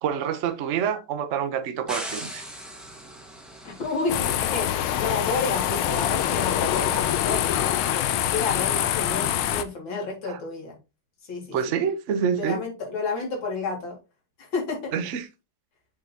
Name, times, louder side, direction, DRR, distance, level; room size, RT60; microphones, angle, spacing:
voice 1, 0.0-2.4 10.3-10.4 11.5-12.6 14.9-15.3, right 8 dB, 60° right, 0.8 m, -27 dB
sound 1, 1.9-7.0, equal, ahead, 1.0 m, -41 dB
voice 2, 3.6-7.4 7.9-10.8 11.3-11.6 12.3-14.0 14.4-15.0, left 3 dB, 65° left, 3.0 m, -31 dB
sound 2, 4.1-9.6, left 11 dB, 85° left, 1.5 m, -25 dB
7.2 x 5.4 x 2.8 m
omnidirectional pair, 2.3 m